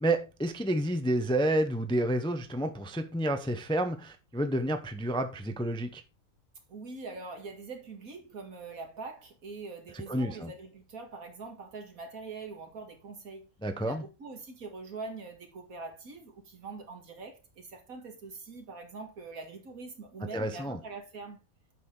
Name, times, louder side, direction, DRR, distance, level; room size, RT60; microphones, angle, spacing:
voice 1, 0.0-6.0 9.9-10.5 13.6-14.0 20.3-20.8, right 1 dB, 5° left, 0.5 m, -30 dB
voice 2, 6.7-13.5 13.8-21.4, right 3 dB, 75° right, 2.3 m, -43 dB
8.2 x 6.3 x 3.7 m
omnidirectional pair, 1.5 m